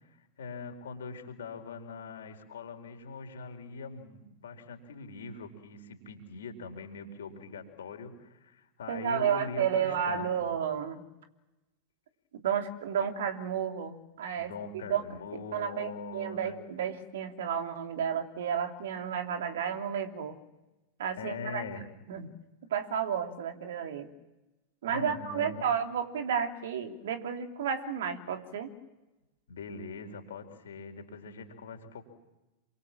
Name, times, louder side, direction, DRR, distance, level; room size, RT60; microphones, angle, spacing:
voice 1, 0.4-10.3 14.4-16.6 21.2-21.9 24.9-25.6 29.5-32.0, left 4 dB, 65° left, 5 dB, 4.6 m, -42 dB
voice 2, 8.9-11.0 12.4-14.5 14.9-15.0 15.5-20.4 21.0-21.6 22.1-22.3 22.7-24.1 24.8-28.7, right 8 dB, 60° right, 5 dB, 3.0 m, -32 dB
28.5 x 24.5 x 7.5 m, 1.0 s
figure-of-eight pair, 90°, 0 cm